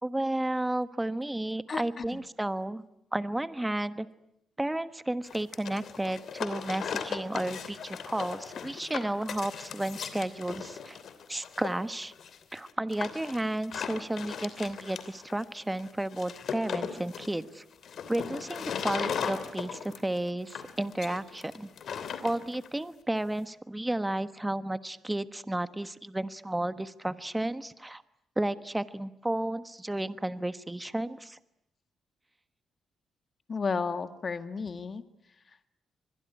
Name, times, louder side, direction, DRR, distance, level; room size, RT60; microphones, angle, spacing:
voice 1, 0.0-2.8 3.1-4.1 4.6-11.0 11.3-12.1 12.5-17.6 18.1-21.7 22.2-28.0 28.4-31.4, right 1 dB, 10° right, 12 dB, 1.3 m, -32 dB
voice 2, 1.7-2.2 33.5-35.0 35.5-35.7, left 5 dB, 40° left, 10 dB, 1.6 m, -33 dB
sound 1, 5.3-22.7, left 7 dB, 65° left, 3.0 m, -38 dB
25.5 x 22.0 x 9.9 m, 0.78 s
cardioid pair, 95°, 0 cm